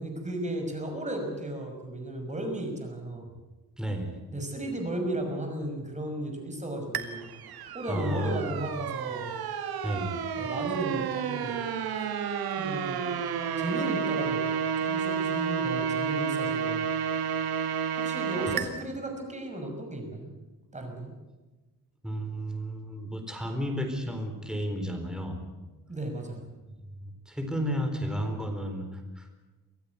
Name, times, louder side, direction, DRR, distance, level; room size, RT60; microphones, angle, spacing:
voice 1, 0.0-3.3 4.3-7.3 7.7-9.3 10.4-11.6 12.6-13.1 13.6-14.4 14.8-16.9 18.0-20.3 20.7-21.1 25.9-26.4, right 1 dB, 20° right, 3 dB, 6.0 m, -35 dB
voice 2, 3.8-4.1 7.9-8.4 9.8-10.2 18.5-18.6 22.0-25.4 26.7-26.8 27.3-29.3, equal, ahead, 4 dB, 4.1 m, -32 dB
sound 1, 6.9-18.7, right 7 dB, 85° right, 2.1 m, -31 dB
25.0 x 15.5 x 8.5 m, 1.2 s
cardioid pair, 125°, 36 cm